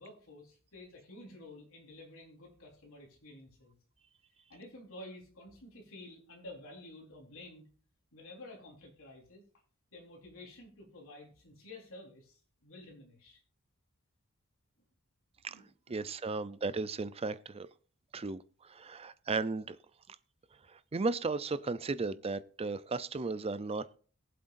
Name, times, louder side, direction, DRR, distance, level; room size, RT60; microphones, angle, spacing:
voice 1, 0.0-3.8 4.5-7.7 8.1-9.4 9.9-13.4 15.4-16.1, left 1 dB, 65° left, 4.1 m, -51 dB
voice 2, 15.9-17.7 18.1-19.8 20.7-24.0, right 3 dB, 25° right, 0.5 m, -35 dB
22.5 x 7.7 x 2.6 m
head